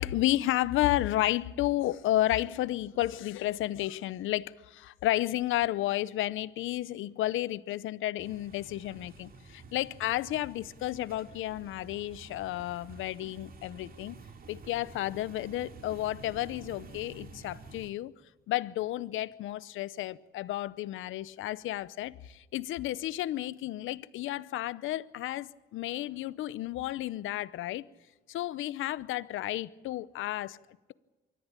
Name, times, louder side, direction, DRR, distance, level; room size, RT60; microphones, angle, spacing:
voice 1, 0.0-14.2 14.5-18.1 18.5-27.8 28.3-30.6, left 15 dB, 85° left, 0.8 m, -32 dB
sound 1, 8.2-17.9, right 3 dB, 50° right, 2.7 m, -50 dB
24.0 x 14.5 x 8.6 m
cardioid pair, 90°, 20 cm